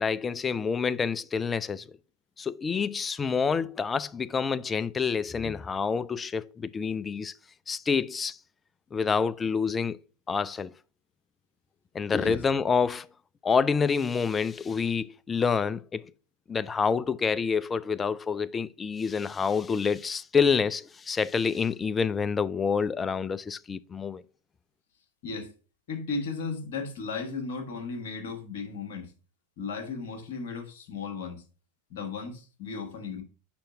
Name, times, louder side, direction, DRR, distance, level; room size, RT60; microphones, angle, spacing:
voice 1, 0.0-1.8 2.4-7.3 7.7-8.4 8.9-10.0 10.3-10.7 11.9-13.1 13.4-16.1 16.5-24.2, left 5 dB, 15° left, 0.3 m, -27 dB
voice 2, 25.9-29.1 29.6-31.4 31.9-33.2, left 4 dB, 55° left, 1.4 m, -35 dB
5.0 x 4.3 x 5.6 m
figure-of-eight pair, 90°, 0 cm